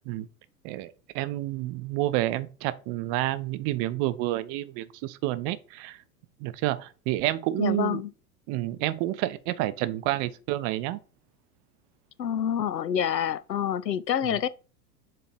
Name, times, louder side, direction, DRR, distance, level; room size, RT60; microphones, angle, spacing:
voice 1, 0.6-6.0 6.4-8.0 8.5-11.0, right 16 dB, 35° right, 0.6 m, -29 dB
voice 2, 7.6-8.1 12.2-14.5, left 9 dB, 85° left, 0.6 m, -27 dB
7.4 x 3.2 x 4.2 m
figure-of-eight pair, 90°, 49 cm